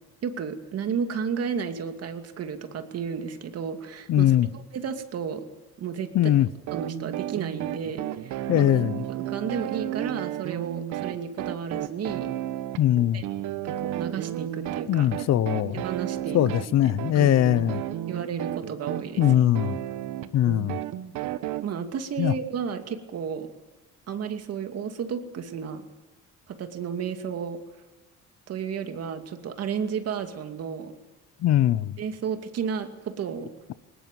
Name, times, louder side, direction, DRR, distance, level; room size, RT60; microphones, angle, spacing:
voice 1, 0.2-5.4 5.8-6.4 6.7-8.8 9.1-12.3 13.1-13.2 13.6-15.1 15.7-16.4 16.8-17.3 18.1-19.2 21.6-23.5 24.1-25.9 26.5-27.6 28.5-30.9 32.0-33.5, right 7 dB, 55° right, 2.5 m, -32 dB
voice 2, 4.1-4.5 6.1-6.5 8.5-9.0 12.8-13.2 14.9-15.8 16.3-17.8 19.2-19.8 20.3-20.8 22.2-22.3 31.4-32.0, left 12 dB, 65° left, 0.8 m, -21 dB
sound 1, 6.7-21.6, right 13 dB, 90° right, 1.2 m, -33 dB
21.0 x 19.5 x 9.2 m
cardioid pair, 120°, 29 cm